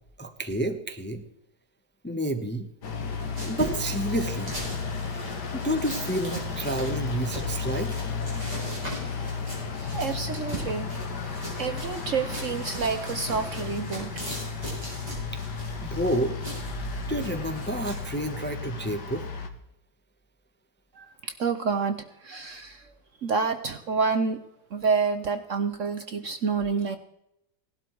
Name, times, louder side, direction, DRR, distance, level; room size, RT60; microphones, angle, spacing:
voice 1, 0.2-1.2 2.0-2.7 3.5-4.5 5.5-7.9 15.3-15.4 15.8-16.3 17.1-19.3, right 1 dB, 10° left, 6 dB, 0.8 m, -29 dB
sound 1, 2.8-19.5, left 5 dB, 70° left, 2.0 m, -34 dB
sound 2, 3.4-18.5, right 1 dB, 20° right, 7.6 m, -39 dB
voice 2, 9.9-14.1 20.9-22.9 23.2-24.4 24.7-27.0, right 5 dB, 55° right, 9 dB, 1.0 m, -28 dB
18.0 x 12.0 x 4.6 m, 0.80 s
omnidirectional pair, 1.9 m